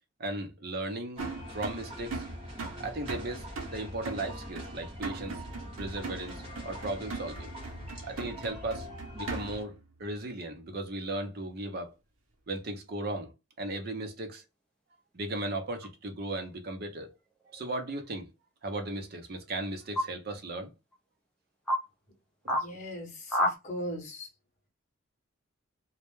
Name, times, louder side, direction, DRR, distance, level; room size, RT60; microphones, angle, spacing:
voice 1, 0.2-1.3 1.5-2.2 2.8-5.4 5.8-7.5 8.0-8.9 9.1-11.9 12.5-13.3 13.6-14.4 15.1-17.2 17.5-18.3 18.6-20.7 22.4-22.6, right 2 dB, 50° right, 0.6 m, -36 dB
sound 1, 1.1-9.6, left 1 dB, 30° right, 1.0 m, -43 dB
Heavy Trash Hit, 1.2-9.8, right 4 dB, 85° right, 0.7 m, -41 dB
sound 2, 15.8-15.9 17.4-17.9 19.9-20.1 20.9-21.0 21.7-21.8 22.5-22.7 23.3-23.5, equal, 5° left, 0.4 m, -28 dB
voice 2, 22.5-24.3, equal, 35° left, 0.9 m, -39 dB
2.1 x 2.1 x 3.0 m
head